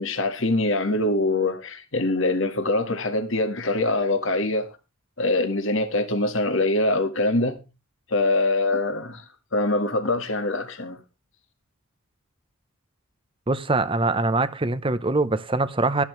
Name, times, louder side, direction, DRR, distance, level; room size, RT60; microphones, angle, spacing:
voice 1, 0.0-4.7 5.2-7.6 8.1-9.3 9.5-11.0, left 2 dB, 60° left, 1.8 m, -23 dB
voice 2, 13.5-16.0, right 2 dB, 25° right, 0.8 m, -23 dB
13.5 x 12.0 x 3.2 m
head